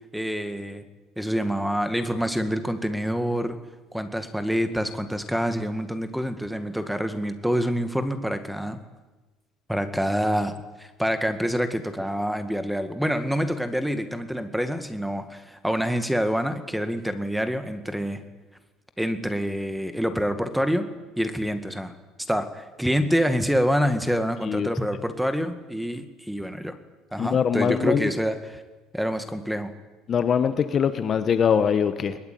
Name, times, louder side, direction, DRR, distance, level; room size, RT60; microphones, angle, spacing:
voice 1, 0.1-0.9 1.2-3.6 3.9-8.8 9.7-10.5 10.8-18.2 19.0-20.9 21.2-21.9 22.3-26.8 27.1-28.6 28.9-29.7, equal, ahead, 9 dB, 2.0 m, -26 dB
voice 2, 27.2-28.1 30.1-32.2, left 7 dB, 35° left, 11 dB, 1.3 m, -22 dB
21.0 x 21.0 x 9.4 m, 1.2 s
cardioid pair, 135°, 0 cm